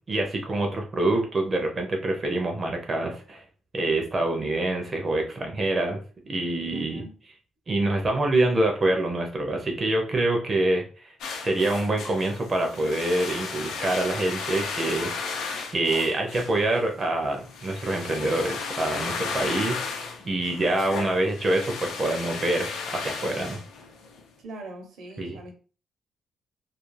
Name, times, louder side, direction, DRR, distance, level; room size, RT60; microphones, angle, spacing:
voice 1, 0.1-3.4 3.7-6.0 6.3-7.0 7.7-11.1 11.4-15.1 15.7-23.6 25.2-25.4, right 2 dB, 25° right, 0.4 m, -26 dB
voice 2, 6.7-7.1 24.4-25.5, right 2 dB, 70° right, 0.7 m, -42 dB
sound 1, 11.2-24.2, left 4 dB, 85° left, 0.5 m, -35 dB
2.3 x 2.3 x 3.1 m
cardioid pair, 175°, 0 cm